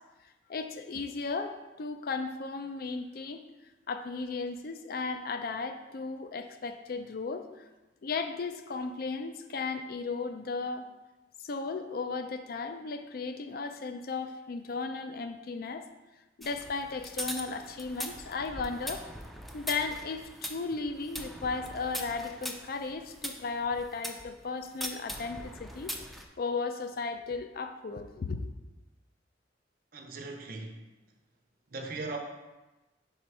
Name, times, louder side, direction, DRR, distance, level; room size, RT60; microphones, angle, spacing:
voice 1, 0.5-3.4 3.9-7.5 8.0-10.9 11.4-15.9 16.4-19.0 19.5-25.9 26.4-28.5, left 4 dB, 55° left, 8 dB, 0.4 m, -35 dB
sound 1, 16.4-24.3 24.8-26.2, equal, ahead, 0.4 m, -41 dB
voice 2, 29.9-30.9 31.7-32.2, right 3 dB, 55° right, 3 dB, 0.7 m, -39 dB
5.1 x 4.4 x 4.7 m, 1.1 s
head